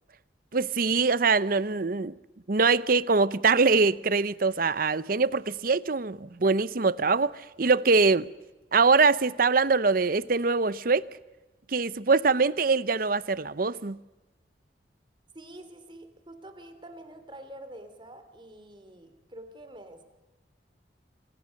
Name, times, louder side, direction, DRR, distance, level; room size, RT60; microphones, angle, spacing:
voice 1, 0.5-2.1 2.5-8.3 8.7-11.1 11.7-14.0, right 4 dB, 50° right, 0.7 m, -23 dB
voice 2, 15.3-20.0, right 1 dB, 25° right, 3.1 m, -46 dB
27.5 x 25.0 x 6.5 m
head